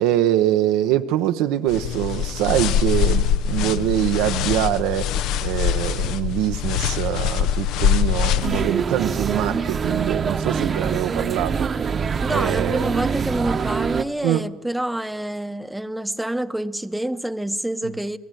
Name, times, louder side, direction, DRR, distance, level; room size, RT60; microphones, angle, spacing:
voice 1, 0.0-12.9 14.2-14.5 17.8-17.9, right 13 dB, 90° right, 0.7 m, -24 dB
sound 1, 1.7-8.7, left 8 dB, 80° left, 0.7 m, -23 dB
sound 2, 8.4-14.0, right 6 dB, 40° right, 0.9 m, -24 dB
voice 2, 12.2-18.2, right 1 dB, 5° right, 0.8 m, -27 dB
29.0 x 17.0 x 9.2 m
cardioid pair, 100°, 0 cm